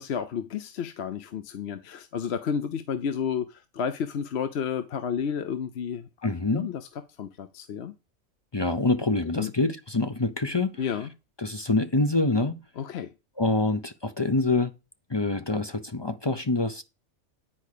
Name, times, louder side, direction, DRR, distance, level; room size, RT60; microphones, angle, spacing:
voice 1, 0.0-6.3 6.5-6.9 7.2-7.9 9.4-9.5 10.8-11.1 12.8-13.1, left 7 dB, 60° left, 0.9 m, -31 dB
voice 2, 6.2-6.7 8.5-10.8 11.4-12.6 13.4-14.7 15.1-16.8, left 3 dB, 30° left, 0.5 m, -25 dB
10.0 x 4.8 x 6.6 m
omnidirectional pair, 1.4 m